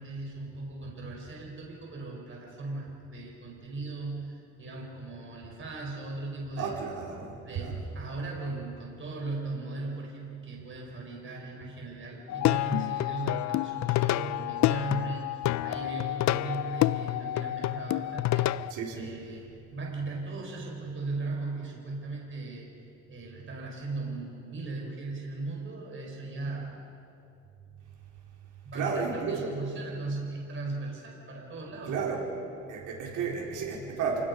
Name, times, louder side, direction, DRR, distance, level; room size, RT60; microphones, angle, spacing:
voice 1, 0.0-6.7 7.4-22.7 23.1-26.7 28.6-32.0, right 3 dB, 40° right, -1 dB, 5.2 m, -38 dB
voice 2, 6.6-7.8 18.7-19.1 28.7-29.5 31.9-32.2 32.7-34.2, right 5 dB, 85° right, -3 dB, 4.5 m, -32 dB
Plucked string instrument, 12.3-18.7, left 14 dB, 65° left, 0.5 m, -28 dB
28.5 x 19.0 x 5.5 m, 2.6 s
cardioid pair, 90°, 30 cm